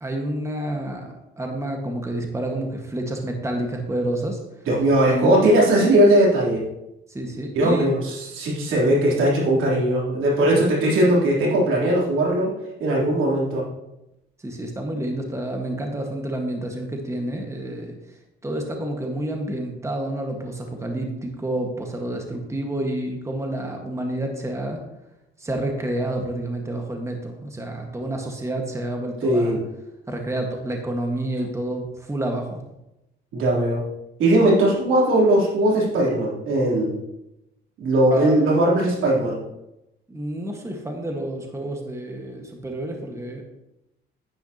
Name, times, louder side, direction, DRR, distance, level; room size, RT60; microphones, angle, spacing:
voice 1, 0.0-1.1 1.4-4.4 5.0-5.4 7.1-7.9 10.5-10.6 14.4-18.0 18.4-24.8 25.4-29.6 30.1-32.6 38.1-38.6 40.1-43.4, right 1 dB, 15° right, 2 dB, 1.6 m, -29 dB
voice 2, 4.7-6.6 7.5-12.5 12.8-13.6 29.2-29.6 33.3-33.8 34.2-37.0 37.8-39.4, right 1 dB, 85° right, -4 dB, 3.4 m, -19 dB
10.5 x 9.6 x 2.9 m, 0.90 s
cardioid pair, 90°, 20 cm